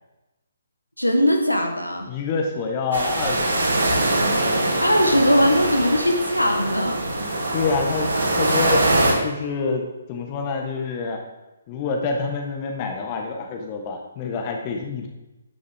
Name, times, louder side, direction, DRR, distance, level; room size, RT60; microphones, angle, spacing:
voice 1, 1.0-2.1 4.8-7.0, equal, 90° left, 3 dB, 1.5 m, -20 dB
voice 2, 2.1-3.7 7.2-8.1 8.4-8.9 9.2-11.2 11.7-15.1, left 4 dB, 25° left, 2 dB, 1.5 m, -27 dB
sound 1, 2.9-9.1, right 1 dB, 60° right, 2.4 m, -22 dB
9.6 x 9.5 x 3.7 m, 1.0 s
figure-of-eight pair, 135°, 0 cm